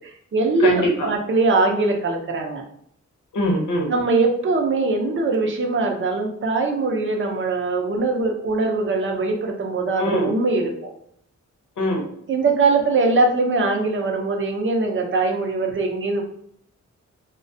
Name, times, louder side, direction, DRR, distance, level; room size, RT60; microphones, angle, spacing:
voice 1, 0.0-2.6 3.9-10.9 12.3-16.2, right 3 dB, 45° right, 2 dB, 0.5 m, -21 dB
voice 2, 0.6-1.1 3.3-3.9 10.0-10.3 11.8-12.0, left 1 dB, 80° left, 0 dB, 0.8 m, -22 dB
2.2 x 2.1 x 2.6 m, 0.66 s
wide cardioid pair, 100°, 30 cm